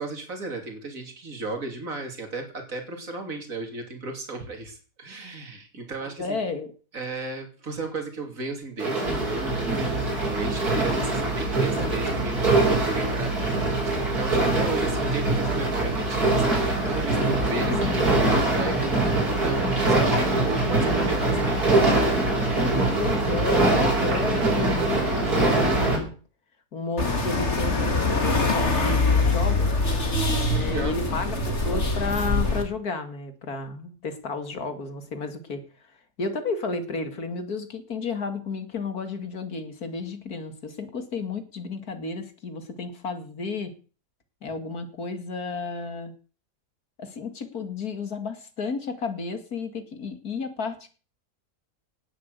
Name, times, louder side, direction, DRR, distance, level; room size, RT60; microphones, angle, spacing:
voice 1, 0.0-6.4 6.9-21.8 30.5-31.0, right 3 dB, 60° right, 4 dB, 3.6 m, -35 dB
voice 2, 6.0-6.7 17.5-17.9 23.0-26.1 26.7-29.8 30.5-35.6 36.2-43.7 44.4-46.1 47.0-50.9, left 3 dB, 80° left, 9 dB, 2.7 m, -32 dB
sound 1, 8.8-26.0, right 2 dB, 85° right, 6.1 m, -23 dB
sound 2, 27.0-32.6, left 3 dB, 50° left, 3.0 m, -24 dB
18.0 x 7.9 x 8.2 m, 0.39 s
omnidirectional pair, 1.6 m